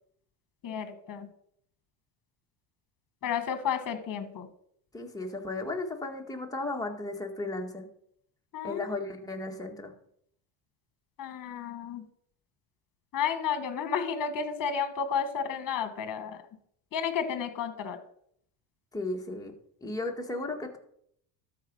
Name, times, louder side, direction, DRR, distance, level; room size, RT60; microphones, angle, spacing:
voice 1, 0.6-1.3 3.2-4.5 8.5-9.0 11.2-12.1 13.1-16.4 16.9-18.0, left 7 dB, 40° left, 9 dB, 1.7 m, -32 dB
voice 2, 4.9-7.9 8.6-9.9 18.9-19.5 19.8-20.8, left 2 dB, 5° left, 1 dB, 1.9 m, -35 dB
13.0 x 5.1 x 5.5 m, 0.69 s
supercardioid pair, 85°, 49 cm